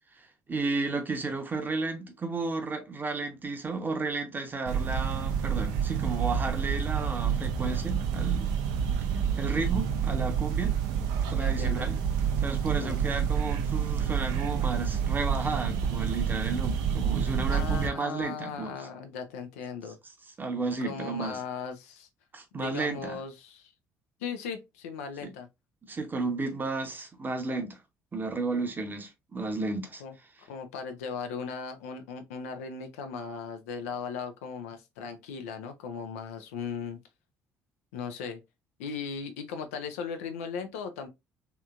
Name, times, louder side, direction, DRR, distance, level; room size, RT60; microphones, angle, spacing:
voice 1, 0.5-8.6 9.4-10.8 11.3-12.0 12.4-18.9 20.4-21.4 22.3-23.2 25.2-25.3 25.9-27.8 28.1-30.0, right 3 dB, 25° right, 0.8 m, -33 dB
sound 1, 4.7-17.9, right 7 dB, 60° right, 0.5 m, -28 dB
voice 2, 11.3-11.9 12.8-13.0 17.5-20.0 20.8-22.1 22.5-23.7 24.2-25.5 26.4-26.5 30.0-30.1 30.4-37.0 37.9-38.4 38.8-41.1, left 6 dB, 65° left, 0.5 m, -37 dB
3.2 x 2.8 x 2.4 m
figure-of-eight pair, 50°, 8 cm